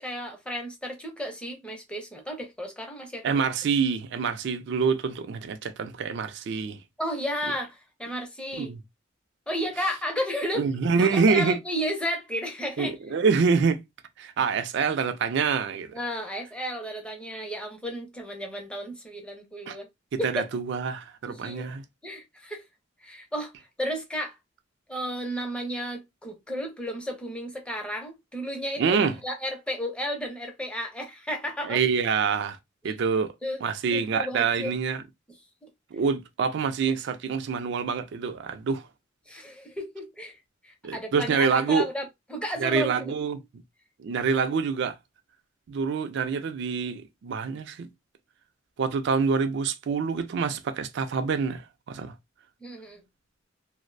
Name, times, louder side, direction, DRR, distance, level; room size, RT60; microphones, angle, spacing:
voice 1, 0.0-3.3 7.0-8.7 9.5-10.6 11.0-13.2 15.9-19.9 20.2-20.5 21.2-21.7 22.0-22.6 23.0-23.5 23.8-24.4 24.9-29.0 29.2-31.8 32.8-33.0 33.4-33.7 33.9-34.7 35.6-35.7 39.3-40.4 40.6-43.1 52.6-53.0, equal, 5° left, 0.6 m, -33 dB
voice 2, 3.2-6.8 8.6-8.8 10.6-11.6 12.8-13.8 14.2-15.9 19.7-19.8 20.1-21.8 28.8-29.1 31.7-32.6 32.8-33.3 33.6-35.0 35.9-38.9 40.8-41.9 42.6-43.4 44.0-45.0 45.7-47.9 48.8-52.1, right 5 dB, 60° right, 0.4 m, -26 dB
2.5 x 2.0 x 2.5 m
head